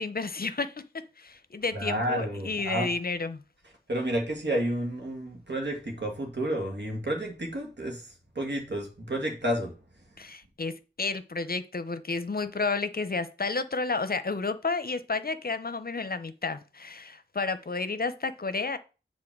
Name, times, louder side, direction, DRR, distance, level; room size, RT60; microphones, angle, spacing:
voice 1, 0.0-3.4 10.2-18.8, left 4 dB, 50° left, 0.7 m, -31 dB
voice 2, 1.7-2.9 3.9-9.7, right 1 dB, 65° right, 2.2 m, -31 dB
7.6 x 3.7 x 6.1 m
cardioid pair, 40°, 19 cm